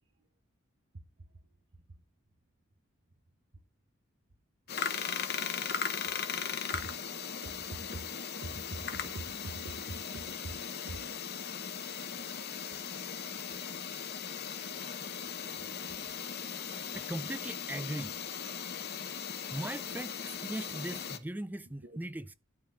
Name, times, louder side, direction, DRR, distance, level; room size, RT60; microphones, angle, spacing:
voice 1, 0.9-2.0 3.5-3.6 6.4-7.0 7.4-11.3 21.8-22.0, right 2 dB, 60° right, 1.0 m, -46 dB
sound 1, 4.7-21.2, left 7 dB, 50° left, 0.9 m, -38 dB
voice 2, 16.7-18.2 19.5-22.3, right 1 dB, 10° right, 0.4 m, -39 dB
12.0 x 4.3 x 6.2 m
head